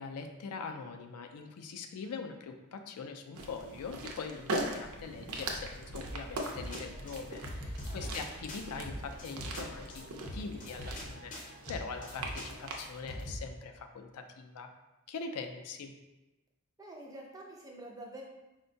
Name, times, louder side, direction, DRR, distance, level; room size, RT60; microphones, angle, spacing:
voice 1, 0.0-14.7 15.1-16.0, left 5 dB, 80° left, 6 dB, 0.4 m, -43 dB
sound 1, 3.3-13.0, right 2 dB, 70° right, 0.5 m, -41 dB
sound 2, 6.0-13.4, equal, 35° left, 0.7 m, -44 dB
voice 2, 7.8-8.3 16.8-18.2, right 1 dB, 15° right, -1 dB, 0.4 m, -47 dB
4.3 x 2.2 x 2.6 m, 1.0 s
head